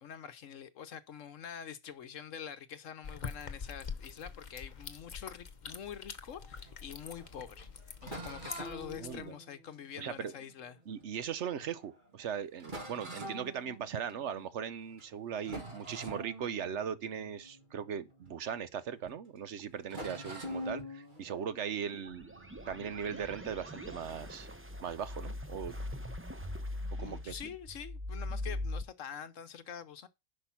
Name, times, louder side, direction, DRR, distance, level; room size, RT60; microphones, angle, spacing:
voice 1, 0.0-7.7 8.0-10.8 27.0-30.1, left 8 dB, 65° left, 1.2 m, -46 dB
sound 1, 3.0-9.3, left 5 dB, 40° left, 0.8 m, -45 dB
sound 2, 6.3-11.2 11.8-12.0 12.2-12.3 12.6-14.5 14.9-15.1 15.4-18.8 19.1-19.2 19.9-22.9, equal, 35° right, 1.8 m, -46 dB
voice 2, 9.0-9.3 10.0-10.3 10.9-22.3 22.7-24.5 24.8-25.8 27.0-27.3, right 8 dB, 60° right, 0.9 m, -39 dB
sound 3, 21.9-28.8, left 1 dB, 15° right, 0.6 m, -41 dB
10.5 x 5.3 x 5.7 m
omnidirectional pair, 1.5 m